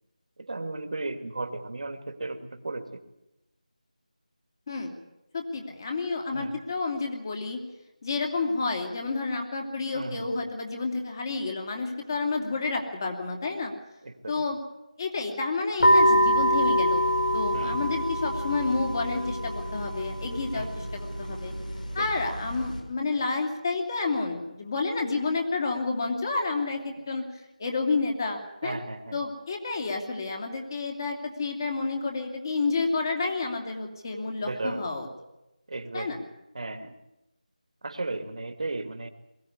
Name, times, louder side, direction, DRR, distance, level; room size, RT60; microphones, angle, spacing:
voice 1, 0.4-3.0 6.3-6.5 9.9-10.3 14.0-14.4 17.5-17.9 20.5-20.8 22.0-22.1 28.6-29.2 34.4-34.9 35.7-36.2 36.5-36.9 37.8-39.1, right 2 dB, 50° right, 9 dB, 2.2 m, -35 dB
voice 2, 4.7-5.0 5.3-7.6 8.0-13.7 14.3-14.6 15.0-17.0 17.3-21.5 21.9-28.8 29.1-35.1 35.9-36.2, left 3 dB, 30° left, 2 dB, 2.9 m, -30 dB
sound 1, 15.8-22.8, equal, 85° left, 5.9 m, -26 dB
22.0 x 16.5 x 9.7 m, 0.93 s
figure-of-eight pair, 170°, 4 cm